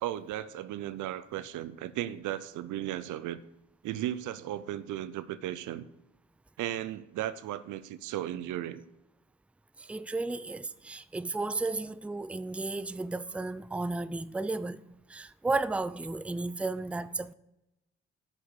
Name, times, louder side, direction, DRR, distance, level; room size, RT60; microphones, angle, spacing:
voice 1, 0.0-3.4 3.8-5.8 6.6-8.8, right 12 dB, 70° right, 0.6 m, -35 dB
voice 2, 9.8-14.8 15.1-17.3, right 3 dB, 5° right, 0.4 m, -33 dB
9.3 x 6.8 x 6.3 m
hypercardioid pair, 40°, 31 cm